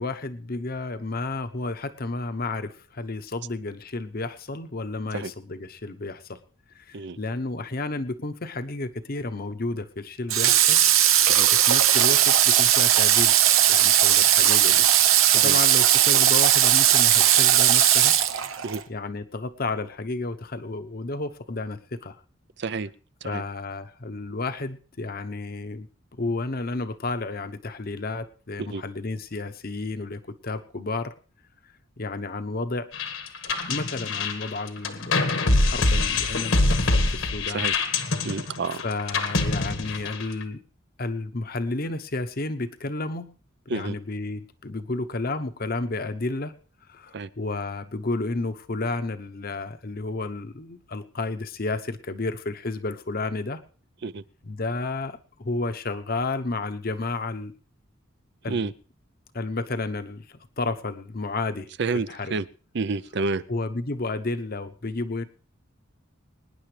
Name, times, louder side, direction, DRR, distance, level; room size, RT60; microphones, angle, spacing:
voice 1, 0.0-6.4 6.7-10.8 11.7-13.3 13.7-14.9 15.4-18.2 18.5-18.6 18.9-22.2 23.2-25.9 26.1-31.1 32.0-32.9 33.7-37.6 38.8-40.6 41.0-43.3 43.7-46.5 46.9-53.6 54.4-57.5 58.4-58.7 59.3-61.7 61.9-62.4 63.5-65.3, left 3 dB, 50° left, 0.9 m, -31 dB
Water / Water tap faucet, 10.3-18.8, right 11 dB, 90° right, 0.9 m, -18 dB
voice 2, 22.6-22.9 23.2-23.4 28.6-28.8 37.5-37.7 38.2-38.8 43.7-43.9 47.1-47.3 54.0-54.2 58.5-58.7 61.8-62.5 62.7-63.4, right 4 dB, 55° right, 0.6 m, -29 dB
sound 1, 32.9-40.4, left 2 dB, 75° left, 1.5 m, -24 dB
24.5 x 10.0 x 3.3 m
head